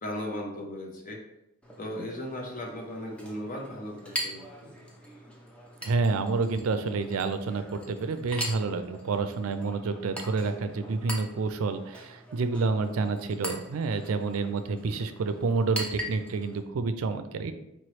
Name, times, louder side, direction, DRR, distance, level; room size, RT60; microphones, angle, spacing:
voice 1, 0.0-1.2 1.8-4.8, left 1 dB, 40° left, 1 dB, 0.8 m, -37 dB
Chink clink, 1.6-16.6, equal, 5° left, 0.5 m, -41 dB
voice 2, 5.8-17.5, right 4 dB, 80° right, 10 dB, 0.4 m, -29 dB
4.4 x 3.0 x 3.1 m, 0.85 s
head